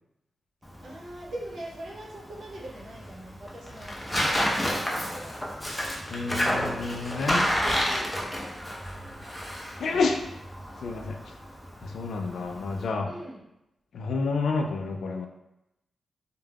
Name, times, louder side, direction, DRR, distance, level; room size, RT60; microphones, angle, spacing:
Tearing, 0.6-12.9, equal, 10° left, 0.4 m, -31 dB
voice 1, 0.8-4.0 4.4-5.4 7.2-8.5 13.0-13.5, right 1 dB, 80° right, -4 dB, 0.7 m, -42 dB
voice 2, 6.1-7.5 9.8-10.2 10.8-11.3 11.8-13.1 13.9-15.3, left 4 dB, 80° left, 4 dB, 0.3 m, -29 dB
2.3 x 2.1 x 3.3 m, 0.87 s
wide cardioid pair, 150°, 0 cm